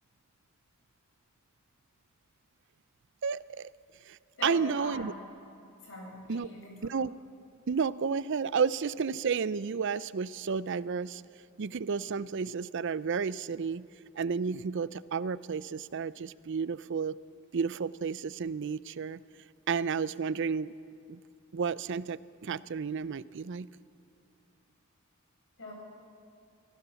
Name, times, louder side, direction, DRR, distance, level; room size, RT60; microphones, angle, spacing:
voice 1, 3.2-3.7 4.1-5.1 6.3-6.5 6.8-7.1 7.7-11.2 11.6-13.8 14.2-17.2 17.5-19.2 19.7-20.7 21.1-21.2 21.5-23.7, right 5 dB, 60° right, 18 dB, 0.5 m, -32 dB
voice 2, 4.4-5.2 5.8-6.9 25.6-25.7, left 2 dB, 65° left, -1 dB, 7.0 m, -41 dB
24.5 x 16.0 x 7.0 m, 2.7 s
head